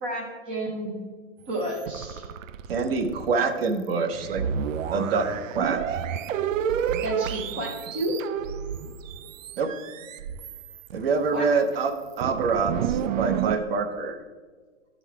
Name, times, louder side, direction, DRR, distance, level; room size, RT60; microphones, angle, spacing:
voice 1, 0.0-0.9 1.5-2.2 7.0-8.2 11.3-11.5, right 1 dB, 10° right, 0 dB, 0.4 m, -31 dB
sound 1, 1.6-3.4 3.9-4.0 4.1-11.5 11.9-13.6, right 8 dB, 85° right, 0.5 m, -30 dB
voice 2, 2.7-4.4 4.9-5.3 5.5-6.0 9.6-9.7 10.9-14.2, right 4 dB, 50° right, 7 dB, 0.9 m, -26 dB
12.0 x 4.0 x 4.6 m, 1.4 s
hypercardioid pair, 165°, 38 cm